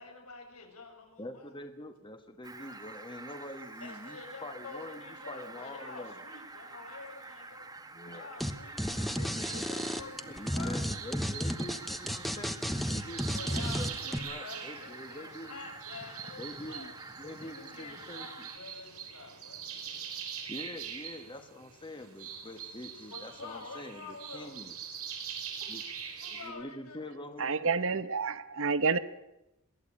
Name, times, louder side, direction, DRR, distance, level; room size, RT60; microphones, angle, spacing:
voice 1, 0.0-1.5 3.8-7.7 8.1-10.8 13.3-16.8 17.3-20.2 23.1-24.6 25.6-25.7 26.2-27.2, left 3 dB, 85° left, 6.2 m, -48 dB
voice 2, 1.2-6.1 7.9-8.5 10.2-15.6 16.4-18.5 20.5-24.7 25.6-25.8 26.2-27.7, left 1 dB, 20° left, 1.4 m, -45 dB
Fowl, 2.4-18.6, right 3 dB, 15° right, 1.5 m, -48 dB
sound 1, 8.4-8.5 8.8-14.2, equal, ahead, 1.1 m, -32 dB
sound 2, 9.4-26.5, right 7 dB, 85° right, 5.2 m, -44 dB
voice 3, 27.4-29.0, right 4 dB, 65° right, 1.0 m, -29 dB
22.5 x 17.0 x 8.8 m
head